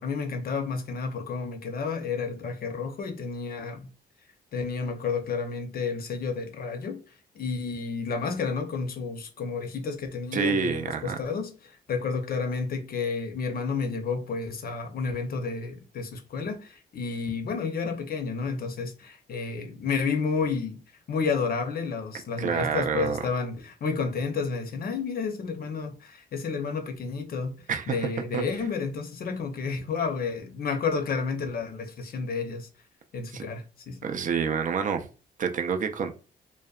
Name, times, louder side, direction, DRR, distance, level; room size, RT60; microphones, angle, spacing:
voice 1, 0.0-3.9 4.5-7.0 7.3-20.8 21.1-27.5 27.9-32.7 33.1-34.1, left 5 dB, 55° left, 0.6 m, -31 dB
voice 2, 10.3-11.2 22.4-23.2 27.7-28.4 33.3-33.4 34.0-35.1 35.4-36.2, right 6 dB, 45° right, 0.4 m, -28 dB
2.6 x 2.1 x 2.3 m
cardioid pair, 85°, 18 cm